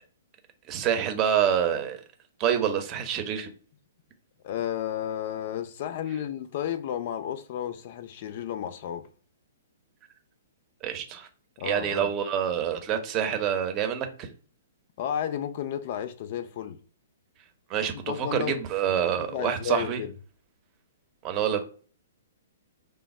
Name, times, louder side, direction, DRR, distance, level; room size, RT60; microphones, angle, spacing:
voice 1, 0.7-2.0 2.4-3.5 10.8-11.3 11.6-14.3 17.7-20.0 21.2-21.6, right 9 dB, 30° right, 0.7 m, -27 dB
voice 2, 4.4-9.1 11.6-12.1 15.0-16.8 17.9-18.6 19.2-20.1, left 10 dB, 45° left, 0.4 m, -32 dB
3.3 x 2.0 x 4.2 m
figure-of-eight pair, 120°, 0 cm